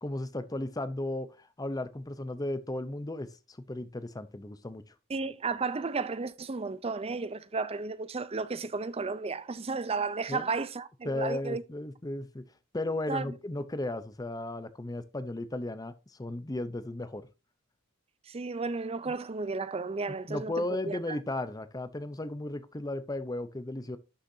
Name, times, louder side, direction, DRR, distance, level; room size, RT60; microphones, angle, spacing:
voice 1, 0.0-4.8 10.3-10.5 11.0-12.4 12.7-17.3 19.1-19.2 20.1-24.0, left 1 dB, 15° left, 0.6 m, -35 dB
voice 2, 5.1-11.6 13.1-13.3 18.3-20.5 20.8-21.2, right 4 dB, 30° right, 0.5 m, -33 dB
11.5 x 6.4 x 2.7 m
head